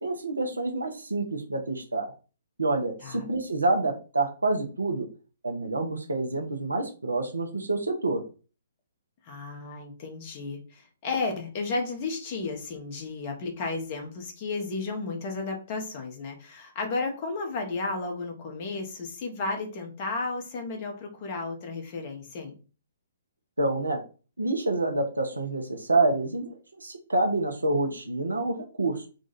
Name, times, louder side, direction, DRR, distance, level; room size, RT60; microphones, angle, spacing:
voice 1, 0.0-2.1 2.6-5.1 5.4-8.2 23.6-24.0 24.4-26.5 26.8-29.1, right 2 dB, 85° right, 3 dB, 0.8 m, -27 dB
voice 2, 9.2-22.5, left 3 dB, 35° left, 3 dB, 1.2 m, -33 dB
3.7 x 2.4 x 4.1 m, 0.35 s
figure-of-eight pair, 125°, 0 cm